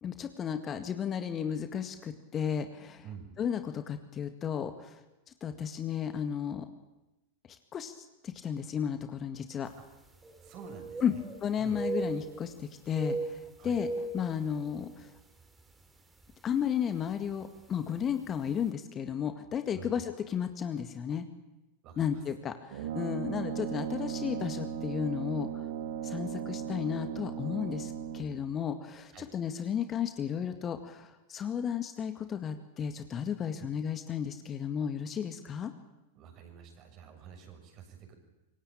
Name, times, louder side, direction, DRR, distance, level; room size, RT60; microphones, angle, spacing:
voice 1, 0.0-3.1 3.4-5.0 5.4-6.7 7.7-7.9 8.2-9.7 11.0-11.1 11.4-13.9 14.1-15.1 16.4-21.3 22.0-25.7 26.0-35.7, left 8 dB, 25° left, 8 dB, 2.0 m, -33 dB
sound 1, 9.7-9.8 10.1-11.4 11.7-12.6 12.9-15.0 15.4-15.6 16.2-16.5 17.6-17.7 18.0-18.1, right 3 dB, 10° right, 3.5 m, -37 dB
voice 2, 10.4-11.2 11.6-11.8 13.6-13.8 19.7-20.0 21.8-22.2 29.1-29.3 33.6-33.7 36.2-38.1, right 7 dB, 35° right, 5 dB, 6.9 m, -48 dB
Brass instrument, 22.7-28.5, right 9 dB, 55° right, 2.8 m, -37 dB
26.5 x 24.0 x 8.9 m, 1.0 s
figure-of-eight pair, 90°, 0 cm